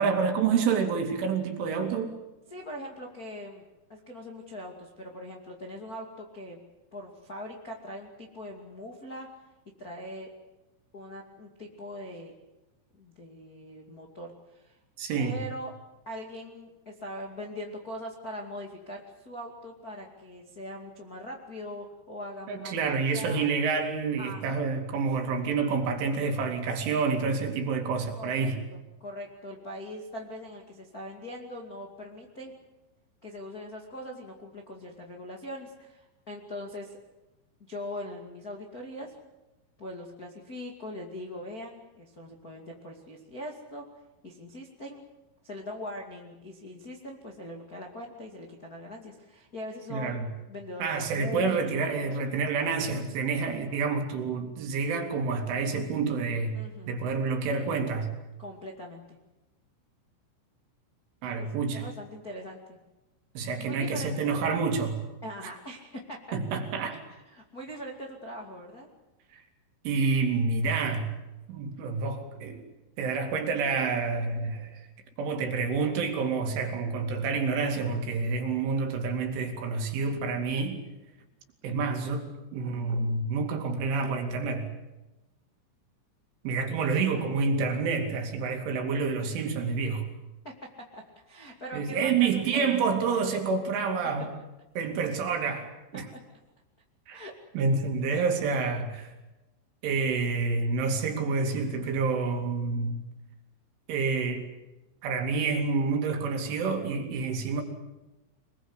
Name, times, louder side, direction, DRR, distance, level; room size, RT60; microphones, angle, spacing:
voice 1, 0.0-2.1 15.0-15.4 22.5-28.6 49.9-50.3 50.8-58.1 61.2-61.8 63.3-65.0 65.4-65.5 66.3-67.0 69.3-69.4 69.8-71.1 71.5-72.6 73.0-74.9 75.2-80.8 81.6-84.7 86.4-90.1 91.7-94.3 94.8-96.1 97.1-97.2 97.5-99.1 99.8-103.0 103.9-104.5 105.0-107.6, right 4 dB, 70° right, 4 dB, 4.9 m, -28 dB
voice 2, 2.5-3.6 3.9-6.6 6.9-9.3 9.8-10.3 10.9-12.3 13.0-14.8 15.1-15.7 16.0-23.5 24.2-24.6 28.1-32.5 33.2-37.0 37.6-39.1 39.8-43.9 44.2-45.1 45.4-52.2 56.5-57.0 58.4-59.2 61.3-62.6 63.7-64.4 65.2-66.4 66.9-67.0 67.2-68.9 90.4-92.7 95.9-96.2 97.1-97.3, equal, 35° left, 0 dB, 1.5 m, -41 dB
24.5 x 21.5 x 8.1 m, 1.0 s
omnidirectional pair, 6.0 m